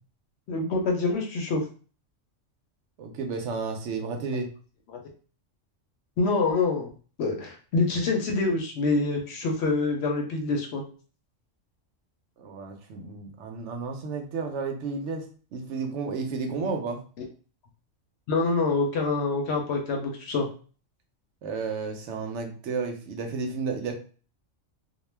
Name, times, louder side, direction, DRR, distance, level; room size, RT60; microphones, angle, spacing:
voice 1, 0.5-1.6 6.2-6.9 7.2-10.8 16.6-16.7 18.3-20.5, left 3 dB, 65° left, 2 dB, 0.8 m, -26 dB
voice 2, 3.0-4.5 12.4-17.0 21.4-23.9, right 4 dB, 70° right, 4 dB, 0.8 m, -32 dB
2.3 x 2.1 x 3.2 m, 0.39 s
omnidirectional pair, 1.3 m